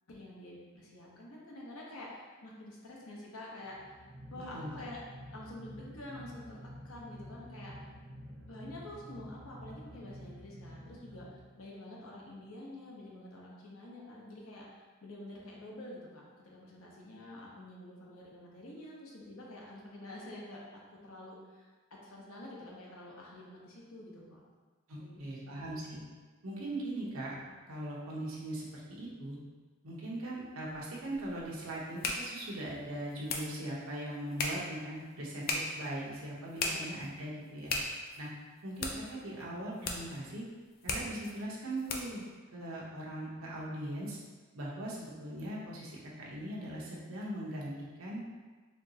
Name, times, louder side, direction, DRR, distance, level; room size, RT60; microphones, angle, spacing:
voice 1, 0.1-4.0 4.3-5.0 5.3-6.6 6.8-7.9 8.5-24.4 25.0-25.8 36.5-36.7, left 1 dB, 80° left, -3 dB, 0.9 m, -48 dB
sound 1, 3.6-12.0, equal, 5° right, 0.6 m, -49 dB
voice 2, 24.9-26.0 26.4-27.4 27.7-29.4 29.8-37.7 38.2-38.3 38.6-40.4 40.8-42.2 42.5-44.2 44.5-48.2, right 1 dB, 75° right, -5 dB, 0.9 m, -40 dB
sound 2, 30.7-42.3, left 2 dB, 45° left, 0.4 m, -40 dB
4.3 x 3.0 x 2.8 m, 1.4 s
head